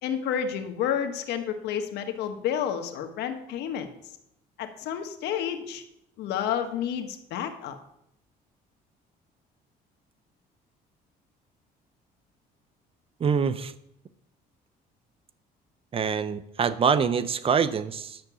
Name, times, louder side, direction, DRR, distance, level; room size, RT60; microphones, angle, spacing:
voice 1, 0.0-3.9 4.6-5.8 6.2-7.8, left 8 dB, 80° left, 6 dB, 1.3 m, -30 dB
voice 2, 13.2-13.7 15.9-18.2, right 6 dB, 35° right, 13 dB, 0.7 m, -25 dB
10.5 x 6.0 x 6.9 m, 0.79 s
cardioid pair, 110°, 17 cm